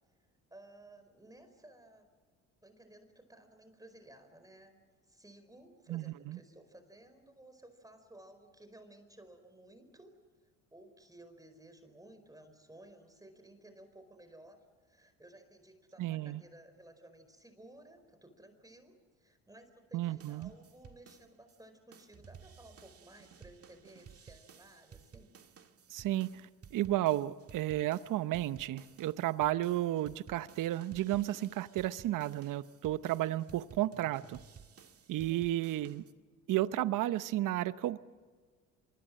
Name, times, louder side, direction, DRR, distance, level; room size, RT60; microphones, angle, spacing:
voice 1, 0.5-2.0 2.6-10.1 10.7-14.6 14.9-25.3 35.1-35.4, right 1 dB, 10° right, 8 dB, 4.7 m, -57 dB
voice 2, 5.9-6.4 16.0-16.4 19.9-20.5 25.9-34.4 35.1-36.0 36.5-38.0, right 14 dB, 60° right, 14 dB, 0.9 m, -33 dB
sound 1, 20.2-21.6 21.9-36.1, right 7 dB, 40° right, 1.8 m, -56 dB
25.5 x 23.5 x 7.6 m, 1.5 s
supercardioid pair, 75°, 35 cm